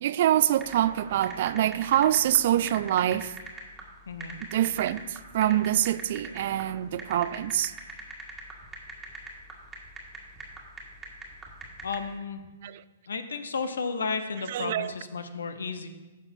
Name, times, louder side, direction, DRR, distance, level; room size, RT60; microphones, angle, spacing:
voice 1, 0.0-3.3 4.5-7.7 12.6-12.8 14.5-14.9, right 12 dB, 55° right, 0.3 m, -25 dB
sound 1, 0.6-12.1, right 3 dB, 10° right, 1.6 m, -42 dB
voice 2, 4.1-4.4 11.8-12.4 13.1-15.9, left 4 dB, 75° left, 0.7 m, -33 dB
15.0 x 6.0 x 2.7 m
figure-of-eight pair, 120°, 0 cm